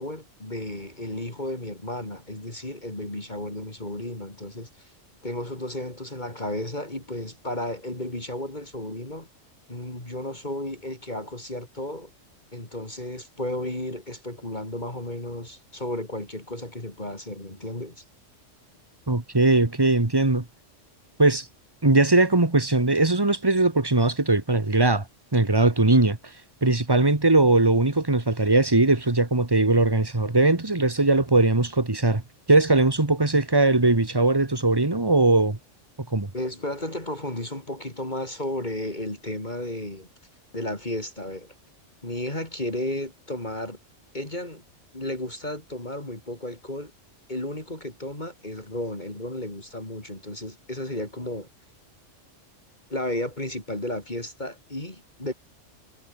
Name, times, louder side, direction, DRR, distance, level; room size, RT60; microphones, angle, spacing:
voice 1, 0.0-4.9 5.2-9.3 9.7-12.1 12.5-18.0 36.3-40.1 40.5-41.5 42.0-43.8 44.1-44.6 44.9-46.9 47.3-51.5 52.9-55.3, left 1 dB, 35° left, 4.4 m, -33 dB
voice 2, 19.1-20.4 21.2-21.5 21.8-25.0 25.3-26.2 26.6-32.2 32.5-35.6 36.1-36.3, right 2 dB, 20° right, 1.8 m, -20 dB
omnidirectional pair, 1.3 m